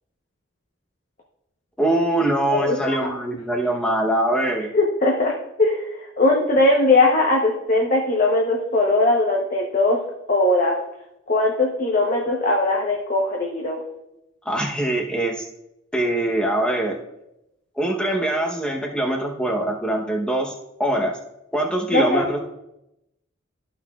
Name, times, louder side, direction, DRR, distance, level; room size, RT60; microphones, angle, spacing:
voice 1, 1.8-4.7 14.4-15.4 15.9-17.0 17.8-20.5 20.8-21.1 21.5-22.4, right 1 dB, 5° left, 0 dB, 0.9 m, -23 dB
voice 2, 2.5-3.1 4.7-5.3 5.6-10.0 10.3-10.7 11.3-13.8 21.9-22.4, left 2 dB, 40° left, -1 dB, 0.9 m, -20 dB
13.5 x 5.9 x 2.4 m, 0.87 s
head